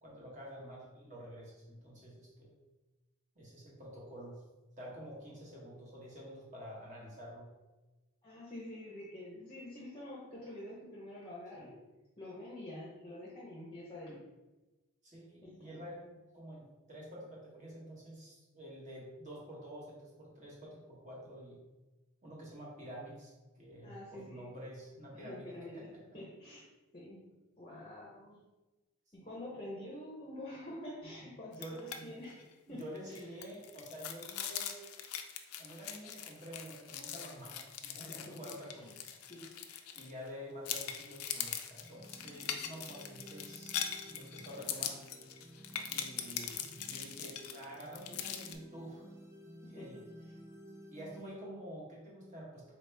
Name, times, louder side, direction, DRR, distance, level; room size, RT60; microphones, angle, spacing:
voice 1, 0.0-2.5 3.3-4.4 4.8-7.4 11.6-11.7 15.0-21.6 22.2-26.0 27.7-27.8 31.0-31.1 31.5-32.1 32.7-35.1 35.6-38.9 39.9-43.8 44.1-44.9 45.9-49.0 49.6-50.0 50.9-52.7, equal, 35° right, -5 dB, 1.2 m, -49 dB
voice 2, 8.2-11.7 12.2-14.3 15.4-15.8 23.8-24.5 25.1-25.9 26.1-26.6 26.9-27.2 27.6-28.4 29.1-33.2 37.9-39.0 39.3-39.7 49.6-50.0, left 1 dB, 25° left, -5 dB, 0.7 m, -47 dB
sound 1, 31.5-32.0 32.3-32.4 32.8-40.3 40.7-48.6, left 9 dB, 85° left, 0.4 m, -42 dB
sound 2, 41.7-51.3, equal, 15° right, 0.5 m, -54 dB
4.2 x 2.9 x 3.3 m, 1.1 s
head